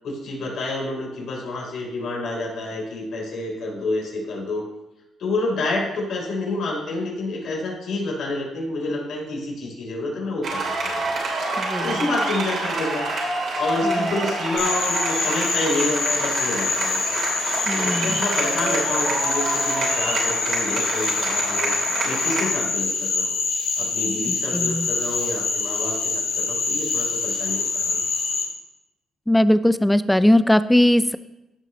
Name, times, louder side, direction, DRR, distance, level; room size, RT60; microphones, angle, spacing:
voice 1, 0.0-4.6 5.2-11.0 11.8-13.0 13.6-17.0 17.7-21.7 22.0-23.4 23.8-28.0, left 2 dB, 70° left, -2 dB, 3.6 m, -28 dB
sound 1, 10.4-22.4, right 2 dB, 65° right, 2.9 m, -27 dB
voice 2, 11.6-12.0 13.8-14.1 17.7-18.2 24.5-24.9 29.3-31.2, left 1 dB, 5° left, 14 dB, 0.4 m, -19 dB
Frog, 14.6-28.4, left 4 dB, 85° left, 2.2 m, -25 dB
15.5 x 5.7 x 3.1 m, 0.93 s
cardioid pair, 90°, 0 cm